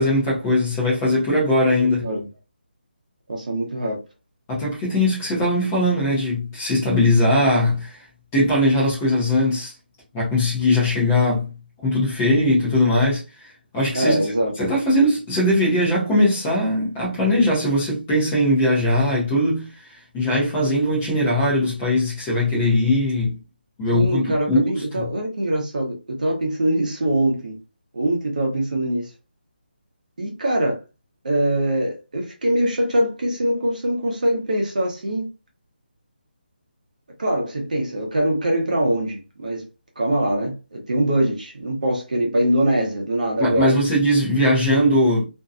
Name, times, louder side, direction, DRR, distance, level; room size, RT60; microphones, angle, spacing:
voice 1, 0.0-2.0 4.5-8.0 8.3-9.7 10.1-11.5 11.8-13.2 13.7-14.2 14.6-19.7 20.1-23.3 23.8-24.2 24.5-25.0 43.4-45.2, left 1 dB, 10° left, 0.6 m, -20 dB
voice 2, 1.8-2.3 3.3-4.0 13.9-14.5 23.9-27.6 27.9-29.1 30.2-30.8 31.2-35.3 37.2-39.7 40.0-43.8, right 1 dB, 50° right, 0.8 m, -23 dB
2.6 x 2.2 x 2.4 m
hypercardioid pair, 175°, 5 cm